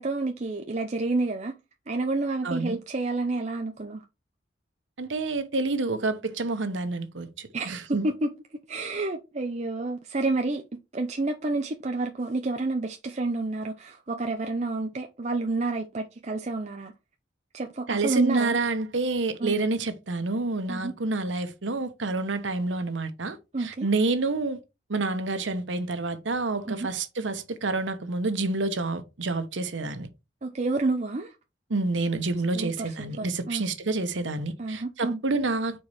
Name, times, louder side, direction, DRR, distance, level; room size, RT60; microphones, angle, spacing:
voice 1, 0.0-1.5 1.9-4.0 7.5-8.3 8.7-10.6 10.9-16.9 17.5-18.6 19.4-19.6 20.7-20.9 23.5-23.9 26.7-26.9 30.4-31.4 32.5-33.7 34.6-35.2, right 3 dB, 40° right, 0.6 m, -29 dB
voice 2, 2.4-2.8 5.0-8.1 17.9-24.6 24.9-30.1 31.7-35.8, right 3 dB, 90° right, 1.0 m, -28 dB
4.6 x 4.3 x 4.8 m
head